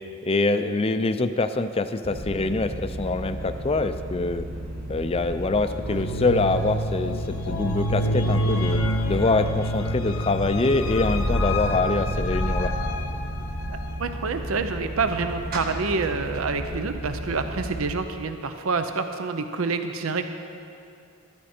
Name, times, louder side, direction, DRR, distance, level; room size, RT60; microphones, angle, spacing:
voice 1, 0.2-4.4 4.9-8.8 9.1-12.7, left 3 dB, 25° left, 10 dB, 0.4 m, -24 dB
sound 1, 2.0-17.9, right 1 dB, 45° right, 1.4 m, -34 dB
sound 2, 5.7-14.0, equal, 85° left, 0.9 m, -27 dB
voice 2, 13.6-20.3, right 4 dB, 75° right, 8 dB, 0.7 m, -27 dB
14.0 x 12.5 x 4.4 m, 2.5 s
head